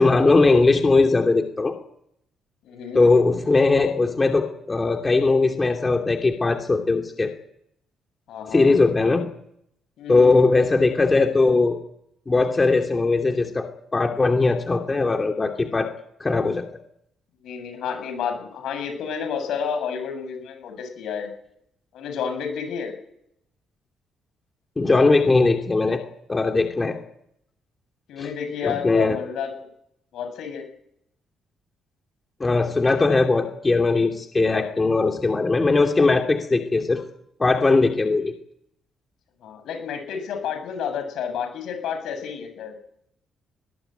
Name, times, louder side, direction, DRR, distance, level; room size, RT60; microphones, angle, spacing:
voice 1, 0.0-1.7 2.9-7.3 8.5-9.3 10.1-11.8 12.3-15.9 16.2-16.6 24.8-26.0 26.3-27.0 28.2-28.3 28.6-29.2 32.4-37.0 37.4-38.3, left 3 dB, 25° left, 3 dB, 2.8 m, -19 dB
voice 2, 2.6-3.0 8.3-8.8 10.0-10.4 17.4-21.3 21.9-22.9 28.1-29.7 30.1-30.7 39.4-42.7, left 7 dB, 80° left, 7 dB, 7.7 m, -30 dB
21.5 x 20.0 x 9.2 m, 0.73 s
cardioid pair, 90°, 0 cm